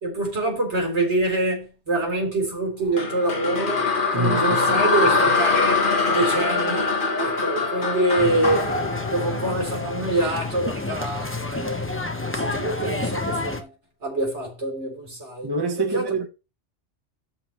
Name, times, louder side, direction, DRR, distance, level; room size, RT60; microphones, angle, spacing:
voice 1, 0.0-3.9 4.1-5.8 6.1-8.8 9.1-12.0 12.3-13.7 14.0-15.5 15.8-16.1, right 2 dB, 65° right, 4.0 m, -25 dB
sound 1, 3.0-10.1, left 4 dB, 45° left, 1.7 m, -23 dB
voice 2, 4.1-4.9 15.4-16.3, right 3 dB, 20° right, 1.1 m, -26 dB
sound 2, 8.2-13.6, left 2 dB, 10° left, 1.0 m, -29 dB
13.5 x 5.6 x 3.1 m
omnidirectional pair, 1.2 m